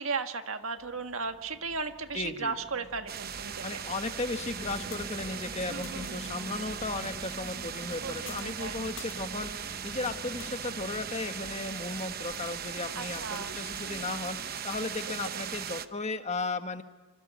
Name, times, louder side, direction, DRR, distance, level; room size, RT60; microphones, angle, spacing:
voice 1, 0.0-3.8 5.7-6.2 8.0-8.8 12.9-13.6 15.3-15.8, right 4 dB, 75° right, 7 dB, 1.6 m, -36 dB
sound 1, 0.8-14.3, right 1 dB, 10° right, 6.7 m, -47 dB
voice 2, 2.1-2.5 3.6-16.8, left 3 dB, 30° left, 7 dB, 1.4 m, -35 dB
sound 2, 3.1-15.9, right 8 dB, 45° right, 0.9 m, -39 dB
sound 3, 4.5-15.1, left 8 dB, 65° left, 3.9 m, -55 dB
26.0 x 25.5 x 8.7 m, 1.2 s
head